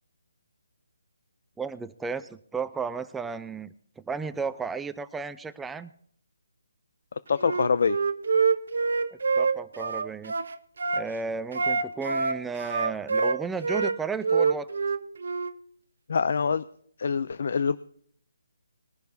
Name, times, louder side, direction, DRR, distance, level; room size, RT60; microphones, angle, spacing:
voice 1, 1.6-5.9 9.4-10.3 10.9-14.7, right 5 dB, 5° right, 12 dB, 0.4 m, -34 dB
voice 2, 7.3-8.0 16.1-16.6 17.0-17.8, left 5 dB, 60° left, 16 dB, 0.4 m, -24 dB
Wind instrument woodwind instrument, 7.4-11.1 11.5-14.0 14.2-15.5, right 5 dB, 65° right, 0.8 m, -26 dB
20.5 x 10.5 x 2.7 m, 0.62 s
hypercardioid pair, 160°, 0 cm